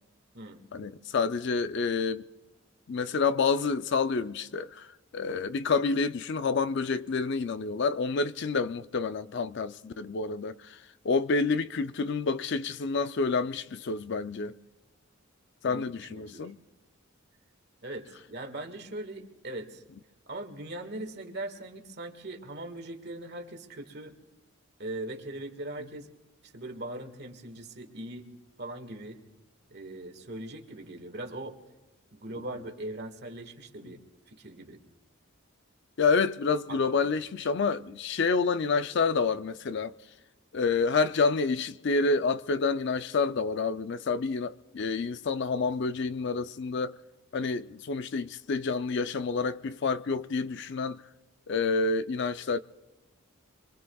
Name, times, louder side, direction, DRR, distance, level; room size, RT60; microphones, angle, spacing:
voice 1, 0.7-2.3 2.9-14.6 15.6-16.6 32.4-32.5 36.0-39.9 40.5-47.0 47.3-51.0 51.5-52.6, left 4 dB, 55° left, 0.4 m, -28 dB
voice 2, 15.6-16.5 17.8-19.8 20.3-24.1 24.8-26.1 26.4-28.3 28.6-29.2 29.7-31.6 32.1-34.0 34.3-34.8 36.7-37.0, right 1 dB, 50° right, 1.7 m, -40 dB
25.5 x 24.0 x 2.3 m
head